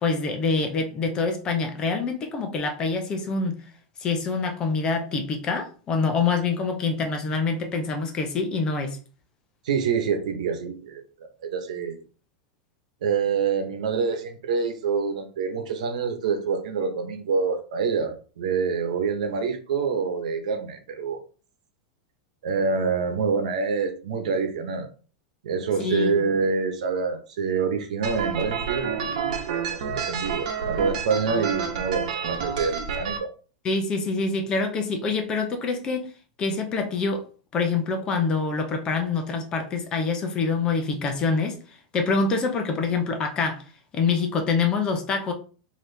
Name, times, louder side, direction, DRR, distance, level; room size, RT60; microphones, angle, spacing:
voice 1, 0.0-3.6 4.0-9.0 25.8-26.2 33.6-36.1 36.4-37.2 37.5-41.6 41.9-43.6 43.9-45.3, left 4 dB, 20° left, 0.7 m, -25 dB
voice 2, 9.6-11.0 11.4-12.0 13.0-21.2 22.4-24.9 25.4-33.3, right 5 dB, 90° right, 1.0 m, -26 dB
sound 1, 28.0-33.2, right 7 dB, 65° right, 1.1 m, -29 dB
4.2 x 2.9 x 3.3 m
supercardioid pair, 165°, 4 cm